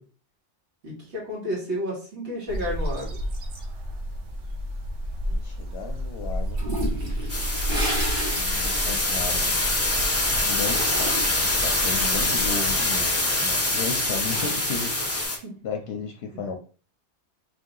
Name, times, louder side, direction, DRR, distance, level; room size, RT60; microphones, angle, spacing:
voice 1, 0.8-3.2 15.4-15.5, equal, 70° right, -5 dB, 2.1 m, -31 dB
sound 1, 2.5-12.8, equal, 90° right, 1.1 m, -32 dB
voice 2, 5.3-6.6 8.3-9.6 10.4-11.1 11.6-14.9 15.3-16.5, left 5 dB, 65° left, 4 dB, 0.8 m, -34 dB
Toilet flush, 6.6-10.0 10.3-11.5 13.5-15.3, right 1 dB, 45° right, 1.4 m, -33 dB
sound 2, 7.3-15.4, left 2 dB, 15° left, 0.7 m, -25 dB
3.8 x 2.7 x 3.8 m, 0.38 s
omnidirectional pair, 1.2 m